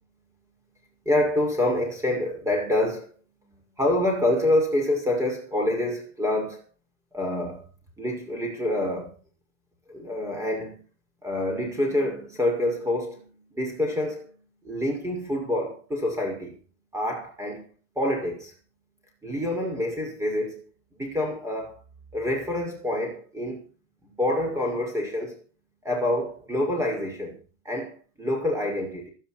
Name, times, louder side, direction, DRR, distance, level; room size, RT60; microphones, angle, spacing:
voice 1, 1.0-3.1 3.8-6.6 7.1-7.6 8.0-9.1 9.9-10.8 11.2-13.2 13.5-14.3 14.6-16.6 16.9-17.7 18.0-18.5 19.2-20.6 21.0-21.8 22.1-23.6 24.0-25.4 25.8-27.4 27.6-29.1, left 1 dB, 10° right, 6.1 m, -27 dB
17.5 x 13.5 x 4.5 m
cardioid pair, 165°, 37 cm